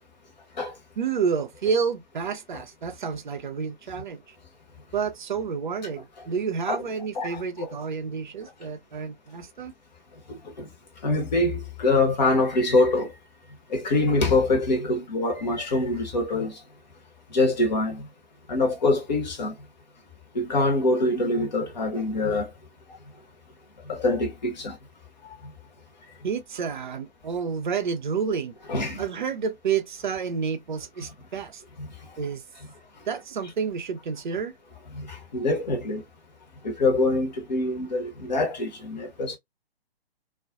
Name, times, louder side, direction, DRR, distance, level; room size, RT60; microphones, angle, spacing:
voice 1, 1.0-4.4 4.9-9.7 26.2-28.6 29.0-31.6 32.2-32.4 33.1-34.6, right 6 dB, 50° right, 0.5 m, -29 dB
voice 2, 7.2-7.7 10.3-10.7 11.0-13.1 13.7-16.6 17.3-18.1 18.5-19.5 20.3-22.5 23.9-24.7 28.7-29.0 31.8-31.9 34.9-36.0 36.6-39.4, left 2 dB, 45° left, 0.9 m, -24 dB
2.4 x 2.2 x 2.3 m
figure-of-eight pair, 130°, 30 cm